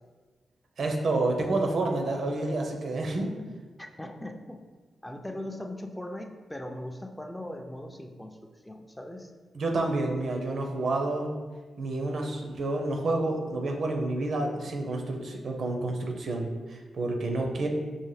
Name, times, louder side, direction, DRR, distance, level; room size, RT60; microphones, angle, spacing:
voice 1, 0.8-3.3 9.5-11.3 11.8-17.7, right 2 dB, 70° right, 2 dB, 0.5 m, -29 dB
voice 2, 3.8-4.6 5.0-9.3, left 1 dB, 10° left, 3 dB, 0.4 m, -39 dB
5.4 x 2.1 x 3.2 m, 1.4 s
cardioid pair, 65°, 0 cm